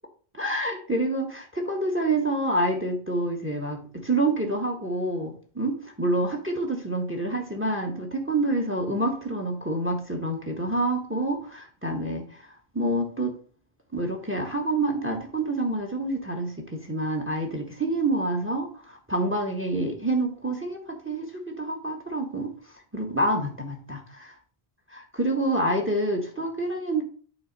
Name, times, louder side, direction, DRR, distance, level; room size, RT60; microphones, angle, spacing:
voice 1, 0.3-12.5 12.7-13.3 13.9-22.5 22.9-24.3 24.9-27.0, right 2 dB, 10° right, 3 dB, 1.4 m, -27 dB
8.8 x 3.9 x 5.3 m, 0.43 s
omnidirectional pair, 1.1 m